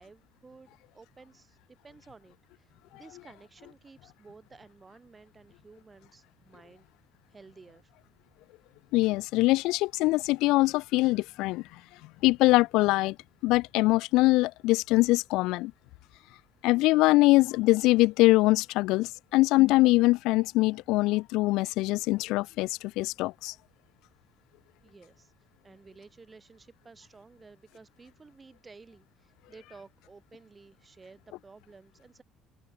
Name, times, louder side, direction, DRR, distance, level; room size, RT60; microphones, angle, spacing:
voice 1, 0.0-1.6 1.8-6.8 7.3-7.9 24.8-25.3 25.6-32.2, right 4 dB, 20° right, 5.1 m, -54 dB
voice 2, 8.9-11.6 12.2-13.2 13.4-15.7 16.6-22.7 23.0-23.5, left 20 dB, 75° left, 0.3 m, -23 dB
cardioid pair, 125°, 0 cm